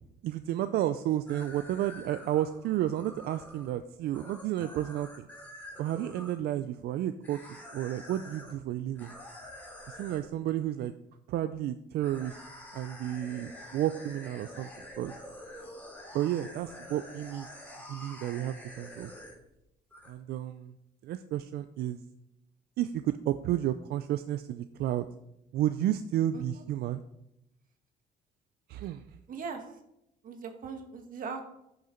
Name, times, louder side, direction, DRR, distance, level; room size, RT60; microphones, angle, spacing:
voice 1, 0.2-5.3 5.8-9.1 9.9-10.9 11.3-12.4 12.7-15.2 16.1-17.5 17.9-19.1 20.1-20.7 21.0-22.0 22.8-25.1 25.5-27.0 28.7-29.0, right 12 dB, 70° right, 10 dB, 0.5 m, -32 dB
sound 1, 1.3-6.4 7.2-8.5 8.9-10.3 12.0-19.6 19.9-20.1, left 1 dB, 10° left, 2.9 m, -47 dB
voice 2, 26.3-26.6 29.3-29.7 30.2-31.4, right 5 dB, 55° right, 4 dB, 1.5 m, -39 dB
10.5 x 6.6 x 4.4 m, 0.82 s
cardioid pair, 110°, 17 cm